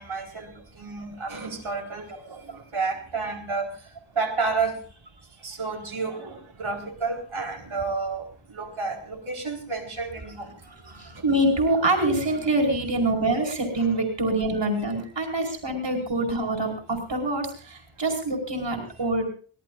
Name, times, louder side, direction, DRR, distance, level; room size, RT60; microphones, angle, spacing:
voice 1, 0.0-3.7 4.1-4.8 5.4-10.5 11.1-11.2 13.8-13.9, right 4 dB, 80° right, 1 dB, 4.3 m, -31 dB
voice 2, 10.7-19.2, right 2 dB, 60° right, 3 dB, 5.1 m, -25 dB
24.0 x 18.0 x 2.5 m, 0.41 s
wide cardioid pair, 85°, 48 cm